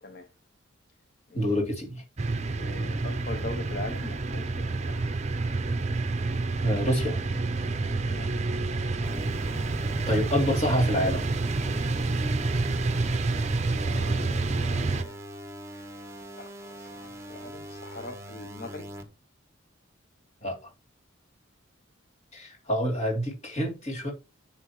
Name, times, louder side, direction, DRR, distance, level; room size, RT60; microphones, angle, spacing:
voice 1, 1.3-2.0 6.6-7.2 10.1-11.3 14.8-15.0 20.4-20.7 22.3-24.1, equal, 35° left, 3.1 m, -27 dB
sound 1, 2.2-15.0, right 3 dB, 35° right, 0.6 m, -28 dB
voice 2, 2.5-5.1 8.0-8.3 13.7-15.3 15.7-18.9, left 2 dB, 50° left, 0.9 m, -42 dB
sound 2, 9.0-19.0, equal, 15° right, 1.1 m, -42 dB
10.0 x 5.9 x 3.1 m
head